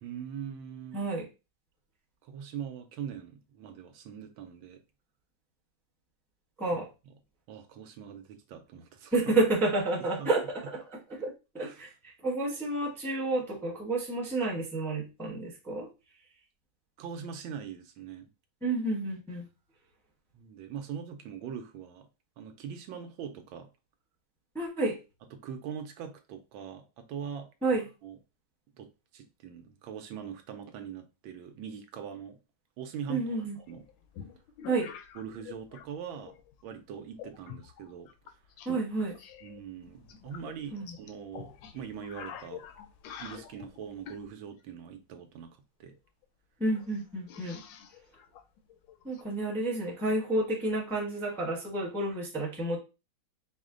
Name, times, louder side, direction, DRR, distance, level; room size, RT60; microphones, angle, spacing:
voice 1, 0.0-1.0 2.2-4.8 6.7-7.1 7.5-9.1 10.2-10.3 11.6-11.9 17.0-18.3 20.3-22.1 22.4-23.7 25.3-28.2 28.7-28.9 29.1-32.4 32.8-33.4 33.7-33.8 35.1-36.4 36.6-38.1 39.4-42.6 43.2-45.9, right 8 dB, 80° right, 1.4 m, -42 dB
voice 2, 0.9-1.2 6.6-6.9 9.1-11.9 12.2-15.9 18.6-19.5 24.5-25.0 27.6-27.8 33.1-33.6 34.7-34.9 38.6-39.1 40.7-40.9 46.6-47.6 49.0-52.8, right 2 dB, ahead, 0.6 m, -30 dB
sound 1, 33.7-35.9 36.1-36.6 37.2-38.7 39.0-44.3 45.9-46.0 46.2-46.3 46.7-49.2, left 8 dB, 75° left, 1.2 m, -47 dB
4.9 x 2.1 x 3.7 m
omnidirectional pair, 2.2 m